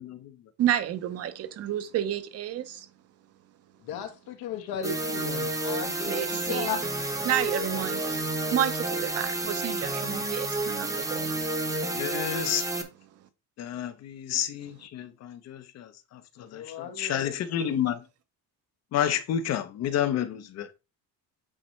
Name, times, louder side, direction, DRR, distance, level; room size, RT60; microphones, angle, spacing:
voice 1, 0.6-2.9 6.1-6.8 7.2-8.0 8.5-11.3 17.6-17.7, right 11 dB, 40° right, 0.8 m, -30 dB
voice 2, 3.8-6.8 7.5-7.8 16.5-17.4, left 6 dB, 85° left, 1.8 m, -36 dB
sound 1, 4.8-12.8, right 2 dB, 10° right, 0.9 m, -30 dB
voice 3, 11.9-12.6 13.6-15.9 16.4-18.0 18.9-20.7, left 10 dB, 45° left, 0.7 m, -30 dB
8.8 x 4.2 x 3.2 m
cardioid pair, 170°, 37 cm